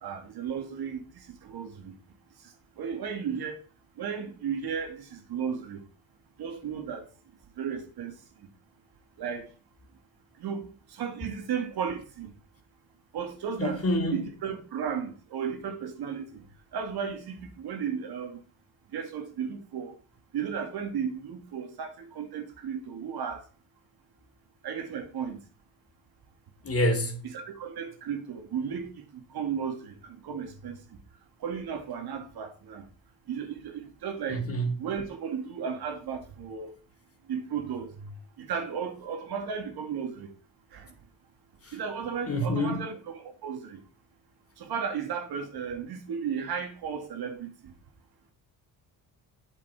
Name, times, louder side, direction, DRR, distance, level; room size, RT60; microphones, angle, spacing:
voice 1, 0.0-1.9 2.8-3.6 4.0-5.8 6.4-7.1 7.6-8.1 9.2-9.5 10.4-12.3 13.1-13.8 14.1-16.4 16.7-18.4 18.9-19.9 20.3-23.4 24.6-25.4 27.2-30.8 31.4-32.8 33.3-34.4 34.8-36.7 37.3-40.3 40.7-40.9 41.7-43.8 44.6-47.7, right 7 dB, 65° right, 2.2 m, -34 dB
voice 2, 13.6-14.2 26.6-27.2 34.3-34.8 41.6-41.7 42.3-42.8, equal, 35° left, 2.8 m, -27 dB
8.1 x 7.5 x 4.4 m
cardioid pair, 100°, 40 cm